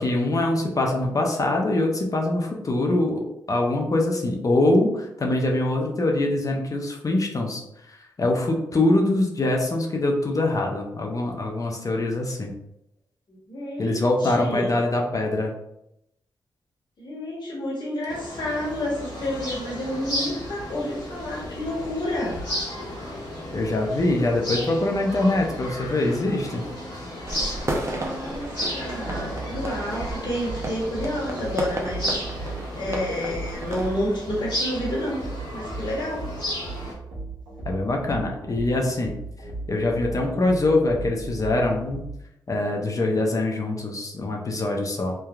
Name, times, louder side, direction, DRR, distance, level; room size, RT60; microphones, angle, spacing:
voice 1, 0.0-3.2 3.5-7.6 7.9-12.5 13.8-15.5 23.5-26.6 37.7-39.1 39.7-42.0 42.5-45.1, left 2 dB, 40° left, 1 dB, 0.6 m, -23 dB
voice 2, 13.3-14.7 17.0-22.4 27.9-35.2 35.5-36.2, left 1 dB, 60° left, -5 dB, 1.3 m, -30 dB
sound 1, 18.1-36.9, equal, 80° left, 1.4 m, -34 dB
sound 2, 27.3-33.9, right 1 dB, 35° right, 0.6 m, -33 dB
sound 3, 29.0-42.2, right 3 dB, 85° right, 1.1 m, -37 dB
3.2 x 2.1 x 2.3 m, 0.81 s
supercardioid pair, 40°, 9 cm